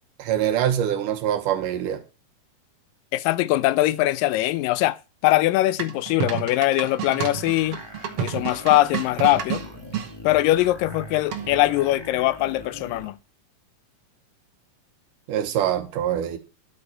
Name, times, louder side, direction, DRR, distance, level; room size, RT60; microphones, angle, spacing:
voice 1, 0.2-2.0 15.3-16.4, right 10 dB, 75° right, 2.7 m, -24 dB
voice 2, 3.1-5.0 5.2-7.8 8.2-9.6 10.2-13.2, left 16 dB, 90° left, 2.3 m, -21 dB
sound 1, 5.8-10.1 11.3-11.7, right 9 dB, 60° right, 1.6 m, -31 dB
sound 2, 7.3-13.1, left 2 dB, 15° left, 1.0 m, -42 dB
12.0 x 5.1 x 5.6 m
omnidirectional pair, 3.8 m